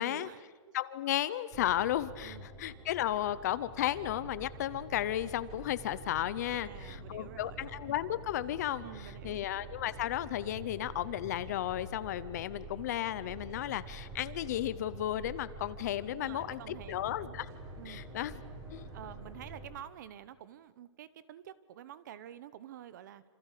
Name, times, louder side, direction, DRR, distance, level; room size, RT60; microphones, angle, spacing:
voice 1, 0.0-0.8 2.2-2.5 6.4-7.6 8.8-9.4 16.1-17.4 17.8-18.0 18.9-23.2, right 10 dB, 35° right, 16 dB, 1.0 m, -49 dB
voice 2, 0.7-8.8 9.2-17.5 17.9-18.4 18.7-18.9, left 12 dB, 35° left, 16 dB, 0.7 m, -34 dB
sound 1, 1.5-19.7, right 2 dB, 20° right, 3.9 m, -47 dB
27.5 x 27.5 x 6.7 m, 1.4 s
hypercardioid pair, 175°, 16 cm